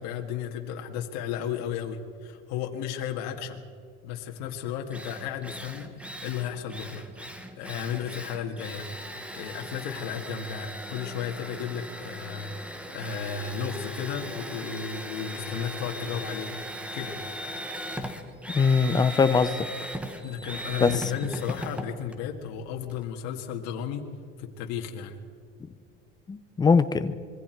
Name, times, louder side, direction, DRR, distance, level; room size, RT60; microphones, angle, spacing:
voice 1, 0.0-3.6 4.0-5.9 6.2-7.0 7.5-8.9 9.3-16.5 16.9-17.2 20.2-24.0 24.4-25.2, left 8 dB, 65° left, 2 dB, 2.0 m, -34 dB
Drill, 4.5-4.6 4.9-23.0, equal, 5° right, 1.3 m, -38 dB
voice 2, 18.5-19.7 20.8-20.9 26.3-27.1, left 5 dB, 15° left, 11 dB, 0.7 m, -21 dB
26.0 x 22.0 x 4.6 m, 2.3 s
cardioid pair, 155°, 30 cm